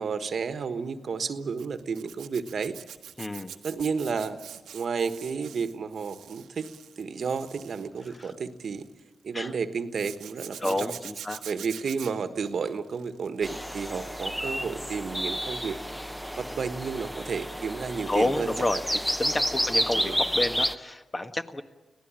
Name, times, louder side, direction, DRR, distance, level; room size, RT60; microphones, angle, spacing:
voice 1, 0.0-2.8 3.6-4.4 4.7-6.7 7.0-8.9 9.2-10.9 11.4-15.8 16.4-18.8 19.9-20.2, right 5 dB, 65° right, 10 dB, 1.3 m, -32 dB
Zipper (clothing), 1.6-9.0 9.9-13.6 14.0-14.3 16.6-16.8 17.1-17.2, right 9 dB, 90° right, 1.2 m, -45 dB
voice 2, 3.2-3.5 8.2-8.3 9.3-9.5 10.6-11.4 18.1-21.6, left 2 dB, 30° left, 7 dB, 1.5 m, -30 dB
sound 1, 13.4-20.7, equal, ahead, 0.9 m, -30 dB
25.0 x 17.0 x 8.9 m, 1.2 s
supercardioid pair, 50°, 0 cm